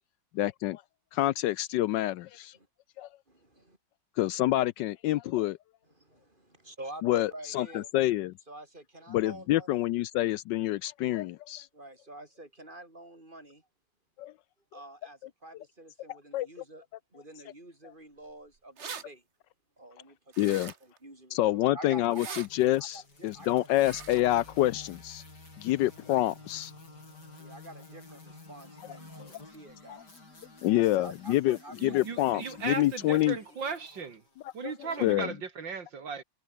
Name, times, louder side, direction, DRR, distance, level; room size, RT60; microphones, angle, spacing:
voice 1, 0.3-0.8 1.1-2.6 3.0-3.1 4.2-5.6 7.0-8.3 9.1-11.7 14.2-14.3 16.1-16.5 20.4-20.7 21.3-25.2 25.6-26.7 29.2-29.3 29.9-30.0 30.6-33.4 34.6-35.3, left 15 dB, 75° left, 1.2 m, -27 dB
voice 2, 3.3-3.8 6.0-7.9 8.5-9.7 11.7-13.6 14.7-16.8 17.1-19.2 19.8-20.2 20.5-22.4 22.8-23.6 27.4-30.0 30.7-32.0, right 1 dB, 25° right, 6.0 m, -48 dB
sound 1, 18.3-18.4 18.6-19.0 20.3-21.0 22.0-22.5 23.7-24.2, right 6 dB, 40° right, 1.4 m, -42 dB
sound 2, 22.4-35.2, left 2 dB, 60° left, 6.9 m, -53 dB
sound 3, 23.9-33.9, left 3 dB, 40° left, 4.1 m, -57 dB
voice 3, 31.8-34.2 34.5-36.2, right 5 dB, 75° right, 3.0 m, -36 dB
omnidirectional pair, 2.0 m